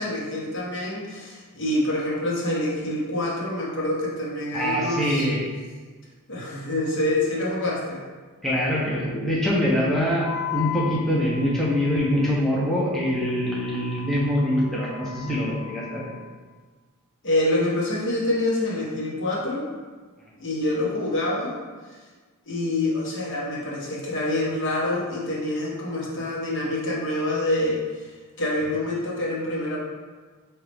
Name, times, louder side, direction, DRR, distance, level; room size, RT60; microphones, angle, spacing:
voice 1, 0.0-5.3 6.3-8.0 17.2-19.7 20.4-21.6 22.5-27.8 28.4-29.8, left 1 dB, 55° left, -4 dB, 1.0 m, -26 dB
voice 2, 4.5-5.4 8.4-16.1, equal, ahead, -7 dB, 0.6 m, -24 dB
Wind instrument woodwind instrument, 10.2-16.3, left 11 dB, 85° left, 1.4 m, -38 dB
5.0 x 2.9 x 3.3 m, 1.4 s
head